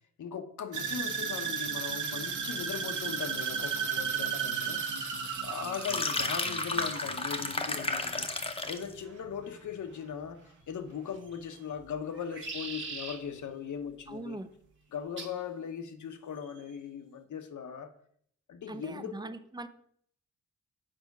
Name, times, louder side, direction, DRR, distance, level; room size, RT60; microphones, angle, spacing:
voice 1, 0.2-4.9 5.4-8.3 8.7-14.4 14.9-17.9 18.5-19.3, left 7 dB, 70° left, 0.9 m, -39 dB
sound 1, 0.7-8.9 9.2-9.7 10.1-10.2, right 6 dB, 70° right, 1.3 m, -35 dB
sound 2, 5.6-8.9, left 3 dB, 20° left, 0.7 m, -32 dB
sound 3, 11.1-11.6 12.1-13.2 15.2-15.4 16.4-16.8, right 3 dB, 40° right, 1.4 m, -41 dB
voice 2, 14.1-14.5 18.7-19.7, right 2 dB, 15° right, 0.5 m, -41 dB
7.6 x 5.0 x 6.0 m
wide cardioid pair, 140°, 31 cm